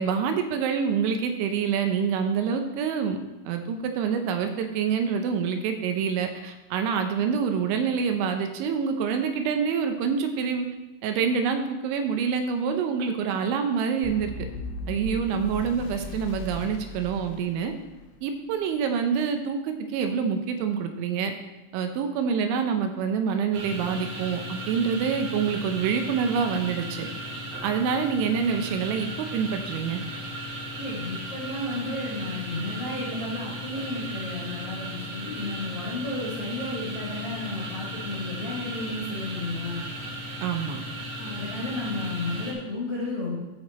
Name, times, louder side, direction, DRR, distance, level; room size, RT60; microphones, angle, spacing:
voice 1, 0.0-3.2 3.5-10.7 11.0-14.3 14.9-17.7 18.2-21.3 21.7-27.1 27.6-30.0 40.4-40.8, right 6 dB, 80° right, 6 dB, 3.0 m, -26 dB
sound 1, 14.0-18.2, left 1 dB, 85° left, 3.5 m, -37 dB
sound 2, 23.5-42.5, right 1 dB, 65° right, 2.9 m, -36 dB
voice 2, 30.8-39.8 41.2-43.3, left 2 dB, 50° left, -6 dB, 1.8 m, -32 dB
13.5 x 5.0 x 4.2 m, 1.1 s
omnidirectional pair, 5.5 m